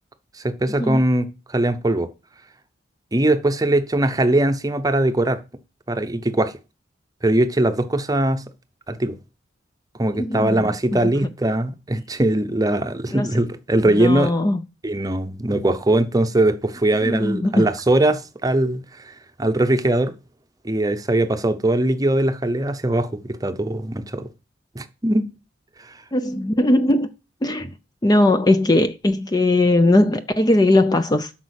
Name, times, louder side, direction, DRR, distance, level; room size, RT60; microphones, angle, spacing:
voice 1, 0.4-2.1 3.1-5.4 5.9-6.5 7.2-8.4 8.9-9.2 10.0-14.3 14.8-19.1 19.4-20.1 20.6-24.3 24.7-25.3 25.8-25.9, right 1 dB, 20° right, 0.7 m, -21 dB
voice 2, 10.2-10.6 10.9-11.3 13.1-13.4 13.8-14.6 17.0-17.7 26.1-27.1 27.4-27.7 28.0-31.3, left 1 dB, 20° left, 0.5 m, -19 dB
8.4 x 6.0 x 6.5 m
head